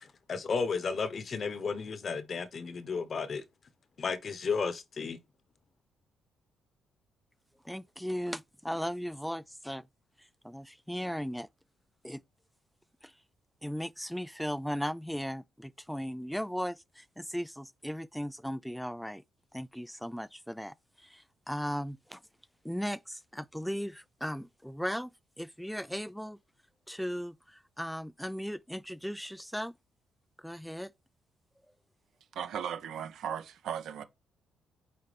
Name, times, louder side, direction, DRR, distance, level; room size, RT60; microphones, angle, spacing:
voice 1, 0.0-3.4 4.0-5.2, left 5 dB, 45° left, 1.1 m, -33 dB
voice 2, 7.6-9.9 10.2-11.5 12.0-12.2 13.0-13.1 13.6-19.2 19.5-22.2 22.6-25.1 25.4-26.4 26.9-29.7 30.4-30.9, equal, ahead, 0.4 m, -37 dB
voice 3, 32.3-34.0, right 8 dB, 75° right, 1.2 m, -37 dB
9.4 x 4.4 x 3.5 m
cardioid pair, 90°, 0 cm